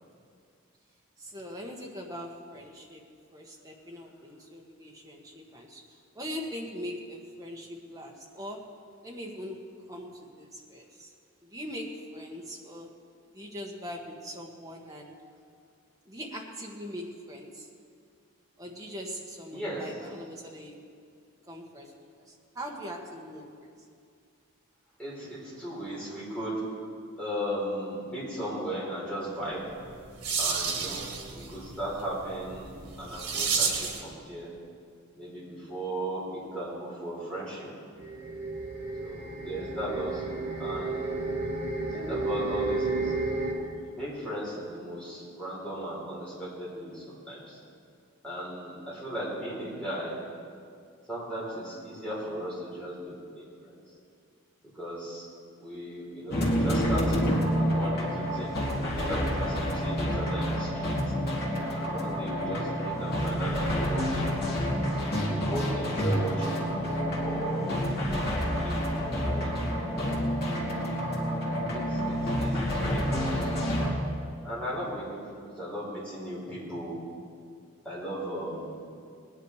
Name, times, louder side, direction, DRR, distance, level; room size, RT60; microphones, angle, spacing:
voice 1, 1.2-3.0 3.3-5.8 6.1-8.6 9.0-9.6 9.9-11.1 11.4-12.9 13.3-15.2 16.0-17.7 18.6-20.7 21.5-21.9 22.3-23.7, equal, 15° right, -1 dB, 1.5 m, -41 dB
voice 2, 19.5-19.9 25.0-26.6 27.2-29.6 30.4-31.0 31.3-34.5 35.2-37.7 39.0-41.6 41.9-43.1 43.8-47.6 48.2-50.1 51.1-53.8 54.7-55.3 55.6-61.0 61.7-64.3 64.9-68.2 68.6-69.5 69.8-69.9 71.7-74.0 74.4-77.0 77.8-78.8, right 1 dB, 5° left, -8 dB, 4.7 m, -37 dB
sound 1, 29.7-34.1, right 5 dB, 90° right, 1.6 m, -32 dB
sound 2, 38.0-43.5, right 3 dB, 50° right, 2.6 m, -32 dB
sound 3, 56.3-73.9, equal, 50° left, 2.6 m, -28 dB
19.5 x 10.5 x 4.9 m, 2.3 s
head